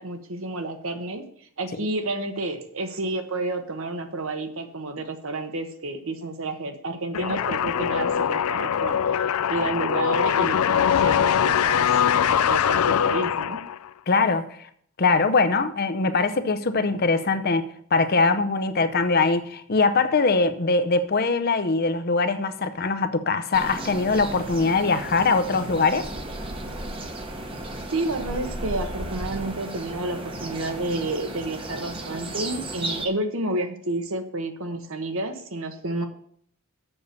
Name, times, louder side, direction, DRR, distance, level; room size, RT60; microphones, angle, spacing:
voice 1, 0.0-9.0 9.5-12.2 12.5-13.6 27.9-36.1, right 2 dB, 70° right, 1.2 m, -30 dB
sound 1, 7.1-13.9, left 8 dB, 85° left, 0.4 m, -22 dB
voice 2, 14.1-14.7 15.0-26.1, left 4 dB, 45° left, 0.6 m, -22 dB
sound 2, 23.5-33.1, right 1 dB, 25° right, 1.0 m, -34 dB
7.0 x 6.8 x 6.8 m
head